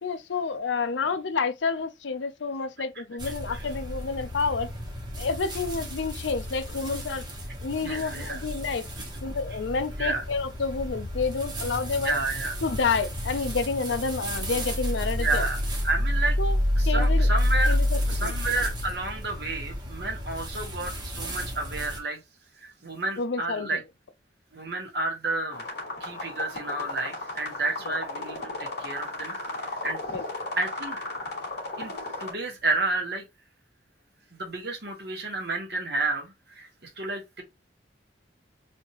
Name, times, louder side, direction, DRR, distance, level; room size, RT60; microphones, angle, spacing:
voice 1, 0.0-4.7 5.2-7.3 7.6-8.9 9.2-12.2 12.6-15.4 16.4-17.3 17.7-17.9 18.2-18.3 23.2-23.7 27.9-28.0 30.1-30.2, left 4 dB, 80° left, 0.5 m, -29 dB
sound 1, 3.2-22.0, equal, 25° right, 1.1 m, -30 dB
voice 2, 7.8-8.4 10.0-10.2 12.0-12.6 15.2-15.6 15.8-16.4 16.8-17.7 18.1-22.2 22.6-23.8 24.5-25.6 26.0-29.3 29.6-30.0 30.6-31.0 31.8-31.9 32.2-33.2 34.3-37.4, right 2 dB, 60° right, 1.3 m, -31 dB
sound 2, 25.5-32.3, left 2 dB, 55° left, 2.4 m, -35 dB
4.3 x 2.6 x 2.9 m
head